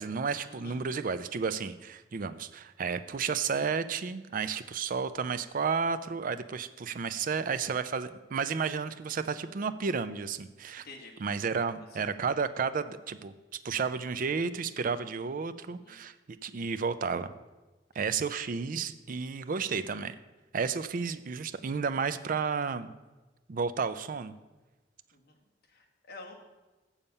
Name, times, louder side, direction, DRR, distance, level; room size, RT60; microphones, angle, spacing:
voice 1, 0.0-10.8 11.2-13.3 13.6-16.1 16.4-17.3 18.0-20.2 20.5-22.9 23.5-24.4, right 5 dB, 50° right, 12 dB, 0.4 m, -32 dB
voice 2, 25.7-26.3, left 2 dB, 60° left, 0 dB, 1.6 m, -48 dB
7.2 x 6.9 x 5.3 m, 1.2 s
head